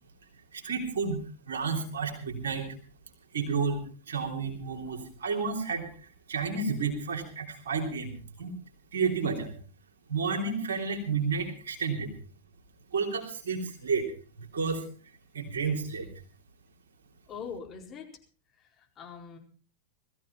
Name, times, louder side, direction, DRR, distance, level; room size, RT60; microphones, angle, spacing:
voice 1, 0.5-2.7 3.3-5.9 6.3-8.5 8.9-9.5 10.1-12.1 12.9-14.1 14.4-14.9 15.3-16.1, right 5 dB, 65° right, 3 dB, 3.4 m, -31 dB
voice 2, 17.3-18.1 18.8-19.4, left 6 dB, 25° left, 1 dB, 4.5 m, -42 dB
19.5 x 14.5 x 4.3 m, 0.39 s
figure-of-eight pair, 90°, 0 cm